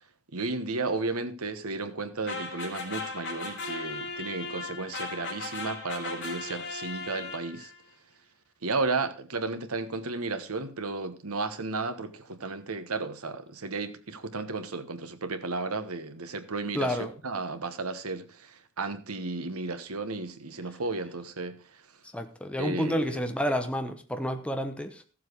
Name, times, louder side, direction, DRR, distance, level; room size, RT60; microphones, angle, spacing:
voice 1, 0.3-7.7 8.6-21.8 22.6-23.2, right 3 dB, 90° right, 1.3 m, -33 dB
sound 1, 2.3-7.8, left 3 dB, 55° left, 3.6 m, -37 dB
voice 2, 16.7-17.1 22.1-25.0, equal, 5° left, 1.0 m, -30 dB
14.5 x 7.6 x 4.7 m
head